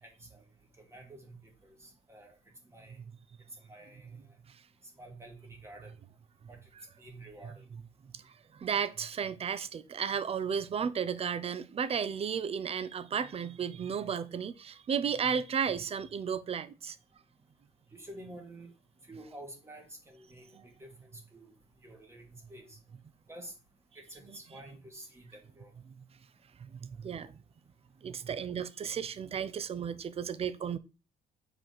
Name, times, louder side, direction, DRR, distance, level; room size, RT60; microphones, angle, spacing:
voice 1, 0.0-0.4 0.8-2.4 2.7-3.0 3.6-4.2 5.0-5.9 6.5-6.6 7.0-7.6 17.9-18.7 19.0-21.5 21.8-22.8 23.3-23.5 23.9-25.7, right 1 dB, 15° right, 2.5 m, -50 dB
voice 2, 8.1-17.0 20.5-20.6 25.9-26.0 26.6-27.4 28.0-30.8, right 7 dB, 35° right, 0.6 m, -34 dB
7.7 x 4.5 x 4.1 m
cardioid pair, 110°, 17 cm